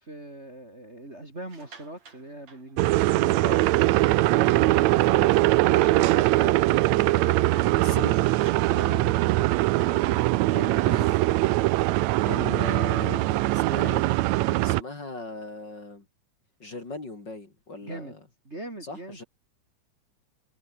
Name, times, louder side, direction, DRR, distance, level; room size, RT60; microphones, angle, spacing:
voice 1, 0.0-4.1 8.7-10.1 10.5-11.2 17.8-18.2 18.4-19.2, right 1 dB, 20° right, 3.3 m, -41 dB
sound 1, 1.3-3.4 3.9-4.1 4.4-4.5 4.9-6.0 6.4-6.6 6.9-7.0 8.3-11.7, right 5 dB, 55° right, 5.4 m, -54 dB
sound 2, 2.8-14.8, right 18 dB, 75° right, 1.8 m, -22 dB
voice 2, 5.0-5.3 7.8-8.3 10.9-11.1 12.2-14.0 14.5-16.0 16.6-18.1 18.8-19.2, left 2 dB, 35° left, 4.1 m, -38 dB
omnidirectional pair, 3.7 m